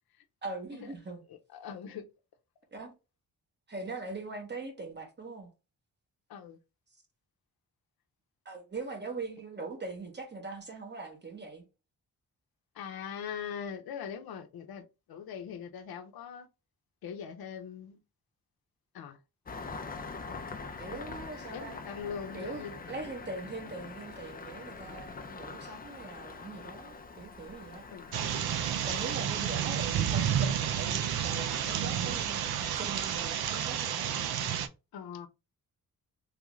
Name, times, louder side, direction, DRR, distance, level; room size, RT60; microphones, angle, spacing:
voice 1, 0.4-1.2 2.7-2.9 3.7-5.5 8.4-11.6 20.8-21.8 22.3-27.9 28.9-34.1, right 3 dB, 30° right, 1.0 m, -41 dB
voice 2, 1.5-2.0 6.3-6.6 12.8-14.8 15.1-16.5 17.0-18.0 18.9-19.2 21.5-22.8 27.9-28.1 34.9-35.3, left 7 dB, 90° left, 0.6 m, -41 dB
Engine starting, 19.5-29.2, left 4 dB, 25° left, 0.4 m, -44 dB
sound 1, 28.1-34.7, right 9 dB, 85° right, 0.5 m, -31 dB
3.4 x 2.4 x 3.0 m
wide cardioid pair, 115°, 36 cm